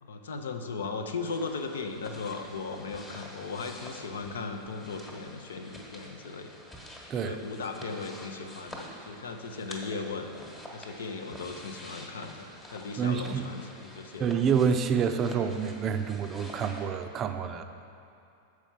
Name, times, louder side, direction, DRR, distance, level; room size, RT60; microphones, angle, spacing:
voice 1, 0.0-6.5 7.1-10.3 10.7-14.3, left 4 dB, 65° left, 6 dB, 0.6 m, -37 dB
sound 1, 1.2-16.9, equal, 15° left, 1.3 m, -47 dB
voice 2, 13.0-13.5 14.2-17.6, right 6 dB, 30° right, 8 dB, 0.5 m, -28 dB
7.1 x 4.7 x 6.9 m, 2.6 s
figure-of-eight pair, 90°, 0 cm